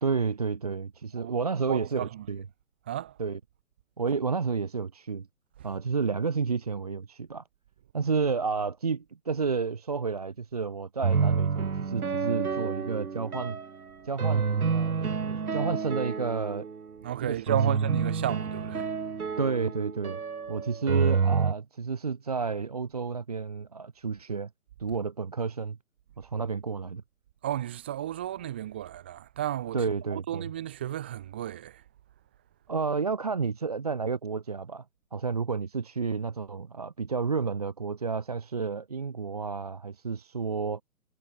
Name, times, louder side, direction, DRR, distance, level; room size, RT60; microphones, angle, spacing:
voice 1, 0.0-2.0 2.3-2.4 3.2-3.4 4.0-5.3 5.6-7.4 7.9-13.6 14.0-16.7 17.2-17.8 19.4-20.2 20.5-24.5 24.8-25.8 26.2-27.0 29.7-30.4 32.7-34.8 35.1-40.8, right 5 dB, 25° right, 1.1 m, -31 dB
voice 2, 1.2-2.3 2.9-3.2 5.6-5.7 17.0-19.4 27.4-31.8, right 12 dB, 10° right, 1.2 m, -34 dB
sound 1, 11.0-13.7 14.2-16.8 17.5-21.5, right 5 dB, 80° right, 3.8 m, -28 dB
hypercardioid pair, 180°, 44 cm